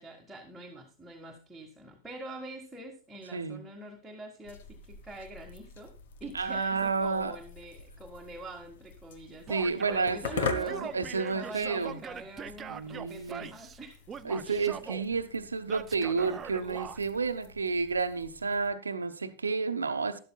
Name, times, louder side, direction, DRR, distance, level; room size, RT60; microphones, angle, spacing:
voice 1, 0.0-5.9 6.2-14.1 14.5-15.0, right 1 dB, 5° right, 1.7 m, -45 dB
voice 2, 3.3-3.6 6.3-7.3 9.5-12.0 12.7-13.5 14.2-20.2, right 4 dB, 75° right, 0.9 m, -31 dB
sound 1, 4.4-18.7, left 6 dB, 60° left, 1.2 m, -44 dB
Male speech man speaking / Yell, 9.5-10.1 10.5-13.8 14.1-15.0 15.7-17.0, right 7 dB, 20° right, 0.6 m, -42 dB
12.5 x 11.5 x 2.3 m
figure-of-eight pair, 90°, 0 cm